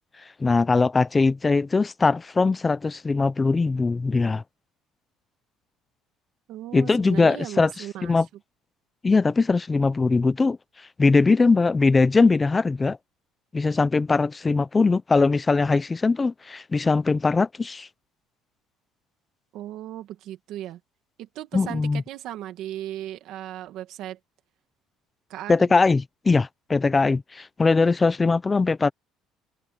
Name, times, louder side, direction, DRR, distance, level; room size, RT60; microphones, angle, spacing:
voice 1, 0.4-4.4 6.7-7.7 8.0-8.3 9.0-10.6 11.0-13.0 13.5-17.9 21.5-22.0 25.5-28.9, left 4 dB, 15° left, 0.6 m, -21 dB
voice 2, 6.5-8.2 19.5-20.8 21.2-24.2 25.3-25.6, right 13 dB, 65° right, 2.2 m, -36 dB
cardioid pair, 150°, 0 cm